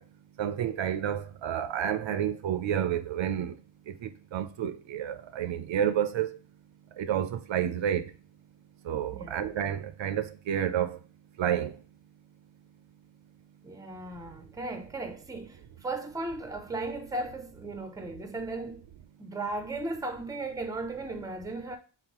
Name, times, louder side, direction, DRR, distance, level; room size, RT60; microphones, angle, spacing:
voice 1, 0.4-3.5 4.0-6.3 7.0-8.0 8.9-11.0 11.4-11.7, right 9 dB, 80° right, 0.6 m, -30 dB
voice 2, 13.6-18.8 19.2-21.8, right 2 dB, 10° right, 0.6 m, -36 dB
3.9 x 3.9 x 2.9 m
wide cardioid pair, 120°, 45 cm